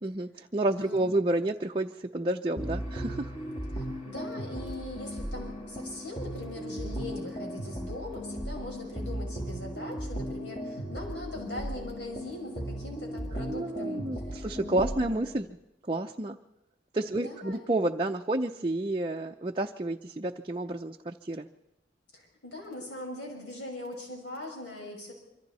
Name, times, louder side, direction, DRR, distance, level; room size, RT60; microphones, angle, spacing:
voice 1, 0.0-3.3 13.5-15.5 15.8-16.4 16.9-21.5, right 2 dB, 30° right, 2 dB, 0.7 m, -30 dB
voice 2, 0.7-1.2 3.7-14.5 14.8-15.0 17.1-17.6 22.1-25.1, left 1 dB, 75° left, 0 dB, 5.6 m, -41 dB
sound 1, 2.6-15.4, equal, 40° left, 6.8 m, -37 dB
26.0 x 25.0 x 4.2 m, 0.90 s
head